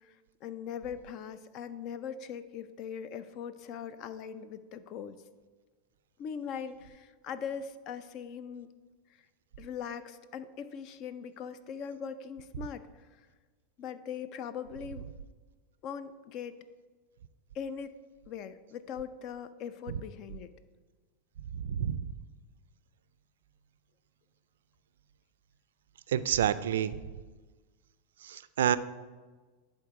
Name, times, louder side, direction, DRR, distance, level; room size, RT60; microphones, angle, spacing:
voice 1, 0.0-5.2 6.2-8.7 9.6-13.1 13.8-15.1 15.8-16.6 17.5-17.9 18.3-20.5, left 7 dB, 50° left, 13 dB, 0.5 m, -40 dB
voice 2, 21.5-22.1 26.1-27.0 28.2-28.8, right 10 dB, 85° right, 15 dB, 0.3 m, -28 dB
10.5 x 3.8 x 4.7 m, 1.4 s
hypercardioid pair, 115°, 0 cm